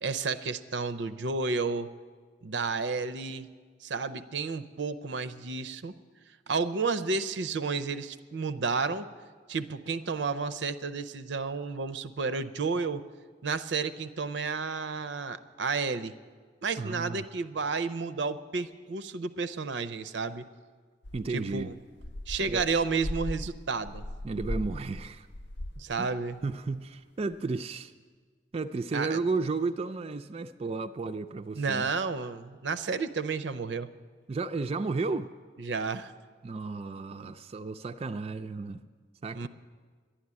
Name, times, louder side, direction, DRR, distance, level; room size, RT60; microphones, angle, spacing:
voice 1, 0.0-1.9 2.4-3.5 3.8-5.9 6.5-9.1 9.5-13.0 13.4-16.1 16.6-20.4 21.3-21.7 22.3-24.0 25.8-26.4 28.9-29.2 31.5-33.9 35.6-36.1 39.3-39.5, right 4 dB, 80° right, 14 dB, 0.6 m, -31 dB
voice 2, 16.8-17.2 21.1-21.7 22.4-22.6 24.2-25.3 26.0-26.1 26.4-27.9 28.5-31.9 34.3-35.3 36.4-38.8 39.2-39.5, right 3 dB, 35° right, 8 dB, 0.4 m, -33 dB
sound 1, 21.0-26.0 26.3-26.4 27.3-27.4, left 1 dB, 75° left, 0.6 m, -38 dB
11.5 x 10.5 x 9.7 m, 1.6 s
head